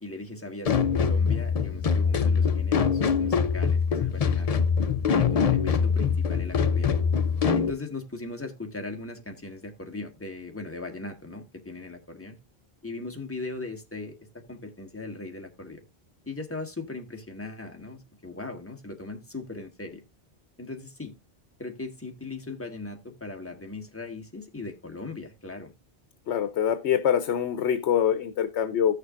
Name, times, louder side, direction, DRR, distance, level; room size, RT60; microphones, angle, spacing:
voice 1, 0.0-4.7 5.1-6.9 7.5-12.4 12.8-15.8 16.3-20.0 20.6-21.1 21.6-25.7, left 3 dB, 10° left, 1.4 m, -39 dB
sound 1, 0.6-7.7, left 6 dB, 45° left, 0.5 m, -23 dB
voice 2, 26.3-29.0, left 9 dB, 75° left, 1.0 m, -25 dB
15.5 x 6.5 x 2.4 m
omnidirectional pair, 1.2 m